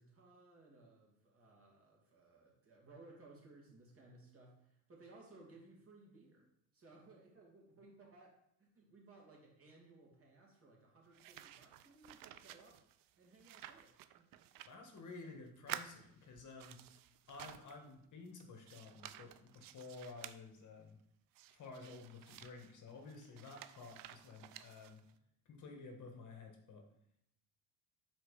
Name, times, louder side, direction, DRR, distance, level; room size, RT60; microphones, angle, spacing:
voice 1, 0.0-6.5 6.7-12.8 13.2-14.3, right 2 dB, 30° right, -2 dB, 2.7 m, -61 dB
sound 1, 11.1-15.3 15.6-17.9 18.3-20.4 21.4-25.2, right 12 dB, 50° right, 0.6 m, -53 dB
voice 2, 14.7-16.8 17.3-21.0 21.5-25.0 25.5-26.8, left 3 dB, 45° left, 3 dB, 1.6 m, -52 dB
6.4 x 4.3 x 4.8 m, 0.77 s
supercardioid pair, 90°, 43 cm